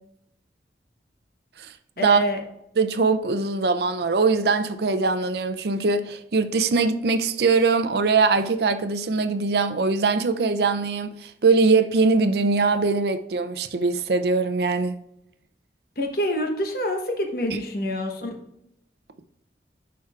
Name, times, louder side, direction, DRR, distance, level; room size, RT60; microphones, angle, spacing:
voice 1, 2.0-2.4 16.0-18.4, equal, 55° left, 1.1 m, -26 dB
voice 2, 2.8-14.9, right 4 dB, 65° right, 0.5 m, -22 dB
11.0 x 4.6 x 2.4 m
head